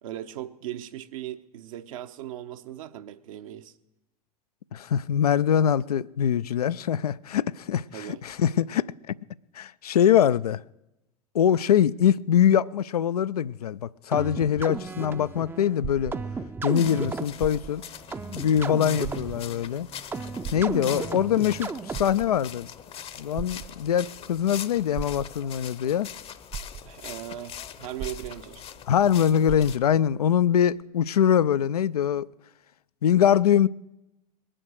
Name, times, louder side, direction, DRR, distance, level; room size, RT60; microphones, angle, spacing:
voice 1, 0.0-3.7 7.9-8.2 26.8-28.6, right 12 dB, 60° right, 0.9 m, -38 dB
voice 2, 4.7-8.9 9.6-10.6 11.3-16.1 16.6-17.8 18.3-19.9 20.5-22.7 23.2-26.1 28.9-32.3 33.0-33.7, left 9 dB, 75° left, 0.4 m, -23 dB
sound 1, 14.1-22.3, right 4 dB, 10° right, 0.5 m, -35 dB
sound 2, 14.8-16.7 17.3-18.0 18.4-18.5 19.0-19.7 20.4-21.3 21.8-22.6 23.4-24.1 24.9-25.6 26.2-26.3 26.5-27.2 28.0-28.8 29.1-29.2 29.5-30.1 30.8-30.9, right 8 dB, 45° right, 1.1 m, -38 dB
sound 3, 16.7-29.8, left 9 dB, 30° left, 0.7 m, -42 dB
21.0 x 7.8 x 6.3 m
figure-of-eight pair, 85°, 20 cm